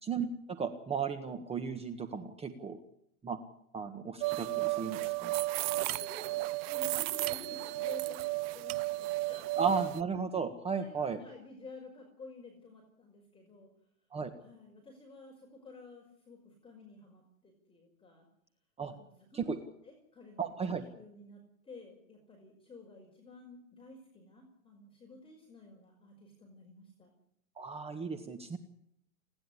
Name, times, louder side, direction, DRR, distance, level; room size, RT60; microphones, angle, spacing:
voice 1, 0.0-2.8 3.2-3.4 3.7-5.3 9.6-11.2 14.1-14.3 18.8-18.9 19.3-19.6 20.4-20.8 27.6-28.6, right 5 dB, 15° right, 7 dB, 1.6 m, -35 dB
sound 1, 4.2-10.0, right 19 dB, 45° right, 0.9 m, -33 dB
voice 2, 5.7-9.6 10.8-13.7 14.4-18.3 18.9-27.1, left 2 dB, 10° left, 1 dB, 5.3 m, -52 dB
30.0 x 10.5 x 10.0 m, 0.73 s
hypercardioid pair, 120°, 43 cm